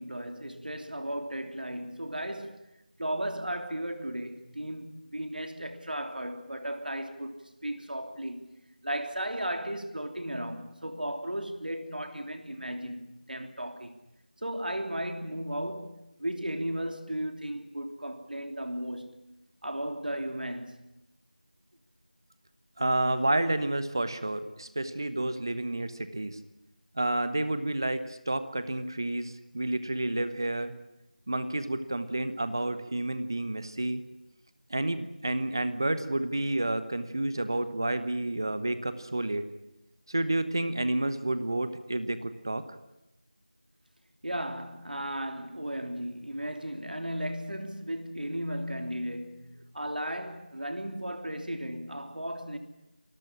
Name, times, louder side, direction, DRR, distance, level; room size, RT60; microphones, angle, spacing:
voice 1, 0.0-2.6 3.0-14.0 14.4-19.2 19.6-20.8 44.2-52.6, right 1 dB, 70° right, 3.1 m, -35 dB
voice 2, 22.8-26.4 26.9-30.7 31.3-34.0 34.7-39.4 40.1-42.6, right 1 dB, 25° right, 1.1 m, -30 dB
27.0 x 14.5 x 10.0 m
figure-of-eight pair, 175°, 5 cm